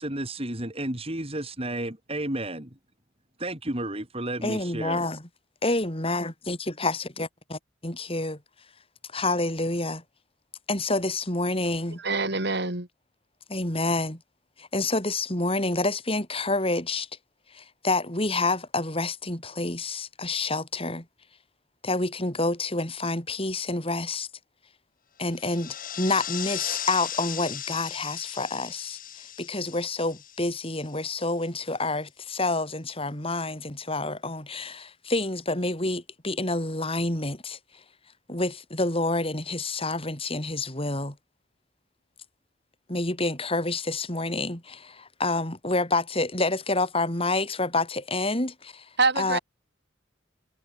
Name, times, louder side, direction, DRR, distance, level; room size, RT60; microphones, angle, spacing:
voice 1, 0.0-2.7 3.4-5.1, right 1 dB, 30° right, 3.9 m, -32 dB
voice 2, 4.4-5.2 5.6-7.6 7.8-8.4 9.1-10.0 10.7-12.0 13.5-14.2 14.6-17.1 17.5-21.0 21.8-24.3 25.2-29.0 29.4-37.6 38.3-41.2 42.9-48.9 49.2-49.4, left 2 dB, 30° left, 6.0 m, -28 dB
voice 3, 12.0-12.9 49.0-49.4, right 3 dB, 60° right, 5.2 m, -25 dB
sound 1, 25.3-31.1, left 10 dB, 45° left, 5.0 m, -37 dB
head